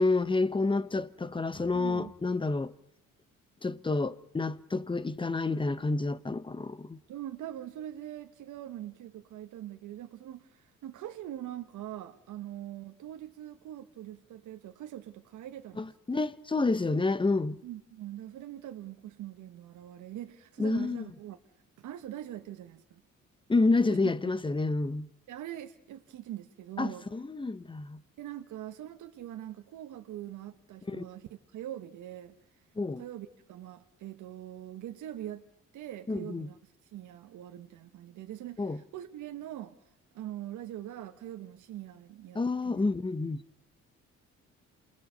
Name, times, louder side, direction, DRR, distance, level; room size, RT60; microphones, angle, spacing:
voice 1, 0.0-2.7 3.6-7.0 15.8-17.6 20.6-21.0 23.5-25.1 26.8-28.0 30.9-31.0 32.8-33.0 36.1-36.5 38.6-38.8 42.3-43.4, left 3 dB, 15° left, 1.0 m, -29 dB
voice 2, 1.7-2.1 7.1-15.9 16.1-16.2 17.6-21.4 21.8-23.0 23.9-24.0 25.3-27.1 28.2-32.6 33.0-35.4 35.7-39.8 40.1-42.8, right 12 dB, 80° right, 1.3 m, -43 dB
28.0 x 20.0 x 6.8 m
cardioid pair, 90°, 30 cm